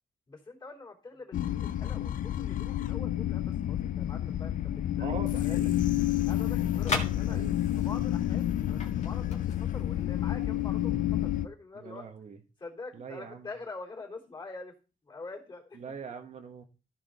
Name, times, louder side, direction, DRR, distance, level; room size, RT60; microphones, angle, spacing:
voice 1, 0.3-5.6 6.2-7.4 7.8-12.0 12.6-14.8 15.0-15.8, left 3 dB, 35° left, -1 dB, 3.4 m, -45 dB
sound 1, 1.3-11.5, left 12 dB, 75° left, 0.5 m, -29 dB
voice 2, 5.0-5.9 7.3-7.6 11.7-12.4 12.9-13.5 15.7-16.7, right 6 dB, 55° right, 6 dB, 1.2 m, -42 dB
sound 2, 5.9-10.9, left 3 dB, 55° left, 2.0 m, -40 dB
14.0 x 4.8 x 4.1 m, 0.33 s
wide cardioid pair, 125°, 14 cm